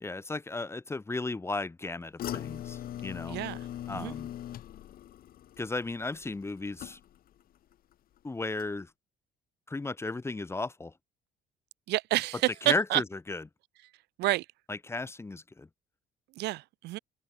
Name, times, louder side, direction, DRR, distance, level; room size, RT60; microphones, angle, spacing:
voice 1, 0.0-3.4 3.9-4.3 5.6-7.0 8.2-8.9 9.7-10.9 12.6-13.4 14.7-15.7, left 3 dB, 15° left, 1.2 m, -35 dB
sound 1, 2.2-7.4 7.7-8.2 8.6-8.7, left 12 dB, 60° left, 2.1 m, -41 dB
voice 2, 3.3-3.6 3.9-4.1 11.9-13.0 14.2-14.5 16.4-17.0, right 18 dB, 80° right, 1.6 m, -29 dB
cardioid pair, 110°, 17 cm